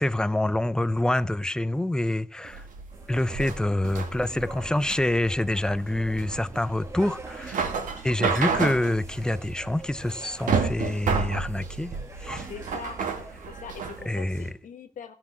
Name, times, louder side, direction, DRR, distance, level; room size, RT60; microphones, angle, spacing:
voice 1, 0.0-2.7 3.1-12.5 14.0-14.5, left 1 dB, 5° left, 0.5 m, -27 dB
sound 1, 2.4-14.0, right 5 dB, 85° right, 2.3 m, -31 dB
sound 2, 2.9-14.5, right 3 dB, 20° right, 1.4 m, -44 dB
voice 2, 12.5-13.0 13.5-15.1, left 7 dB, 85° left, 1.9 m, -42 dB
16.0 x 5.9 x 7.4 m
wide cardioid pair, 175°, 13 cm